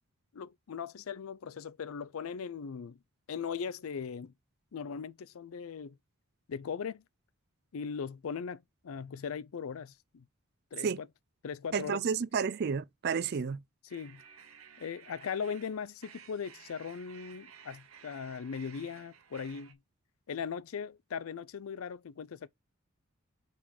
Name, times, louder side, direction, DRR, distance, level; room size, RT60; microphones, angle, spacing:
voice 1, 0.3-3.0 3.3-4.3 4.7-6.0 6.5-7.0 7.7-10.2 10.7-11.1 11.4-12.0 13.9-14.2 14.8-19.8 20.3-22.5, left 6 dB, 75° left, 0.4 m, -39 dB
voice 2, 11.7-13.6, right 6 dB, 45° right, 0.4 m, -31 dB
sound 1, 13.9-19.7, right 7 dB, 75° right, 1.1 m, -55 dB
5.3 x 5.1 x 4.7 m
head